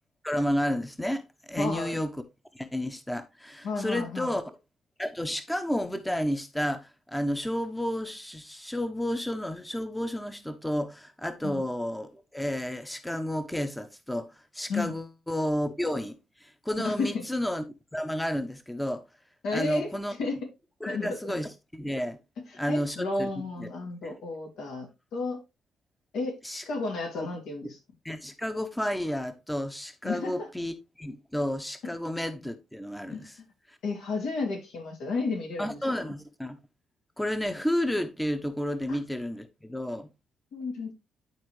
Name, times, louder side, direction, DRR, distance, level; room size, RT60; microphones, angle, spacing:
voice 1, 0.2-2.1 2.5-4.6 5.0-17.6 17.9-19.0 19.5-20.1 20.8-22.2 22.6-23.3 23.6-23.7 24.0-24.2 26.4-26.6 27.2-27.3 28.0-33.3 33.7-33.8 35.6-36.6 37.2-40.1, equal, 5° left, 0.9 m, -31 dB
voice 2, 1.6-2.0 3.6-4.3 11.4-11.6 14.7-14.9 16.8-17.2 19.4-20.5 20.8-21.3 22.5-25.4 26.1-27.8 30.0-30.5 33.1-33.3 33.8-36.1 38.9-39.0 40.5-40.9, left 3 dB, 80° left, 2.8 m, -32 dB
11.0 x 4.3 x 3.2 m
cardioid pair, 90°, 0 cm